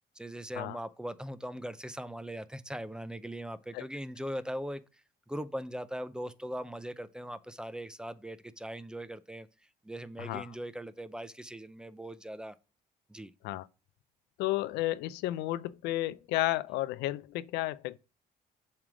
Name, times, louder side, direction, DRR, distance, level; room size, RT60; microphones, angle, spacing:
voice 1, 0.2-4.8 5.3-9.5 9.8-12.6 13.1-13.3, equal, 5° right, 0.5 m, -40 dB
voice 2, 14.4-18.0, left 16 dB, 85° left, 0.4 m, -32 dB
7.3 x 3.3 x 6.1 m
cardioid pair, 110°, 17 cm